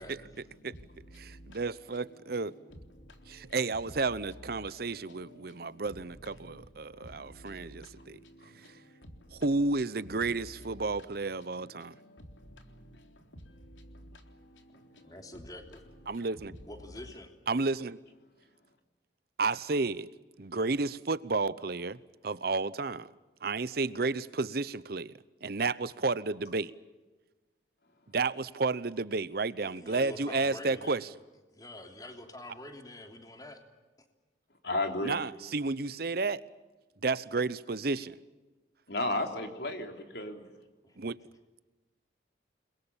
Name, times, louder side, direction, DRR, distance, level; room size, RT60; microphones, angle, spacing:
voice 1, 0.0-3.7 4.0-9.4 9.8-10.1 10.3-12.0 12.6-15.4 15.9-17.0, equal, 90° left, 3.7 m, -53 dB
voice 2, 1.2-2.5 3.3-8.2 9.3-11.9 16.1-16.5 17.5-18.0 19.4-20.1 20.4-22.0 22.2-23.1 23.4-25.1 25.4-26.7 28.1-31.1 35.0-36.4 37.0-38.1 41.0-41.2, right 3 dB, 55° right, 0.8 m, -32 dB
voice 3, 15.0-15.8 16.6-17.3 29.6-31.0 31.5-33.6 40.8-41.1, left 1 dB, 20° left, 3.1 m, -46 dB
voice 4, 34.6-35.1 38.9-40.5, left 2 dB, 60° left, 3.8 m, -32 dB
29.5 x 22.0 x 7.3 m
head